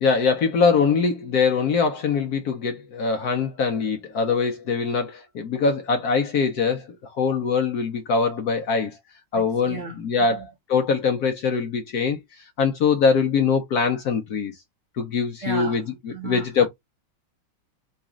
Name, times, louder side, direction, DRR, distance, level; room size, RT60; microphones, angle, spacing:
voice 1, 0.0-9.0 9.3-12.2 12.6-14.5 15.0-15.8 16.2-16.7, left 5 dB, 65° left, 1.0 m, -22 dB
voice 2, 9.3-10.5 15.4-16.7, right 5 dB, 50° right, 1.0 m, -35 dB
4.1 x 2.3 x 3.7 m
omnidirectional pair, 2.1 m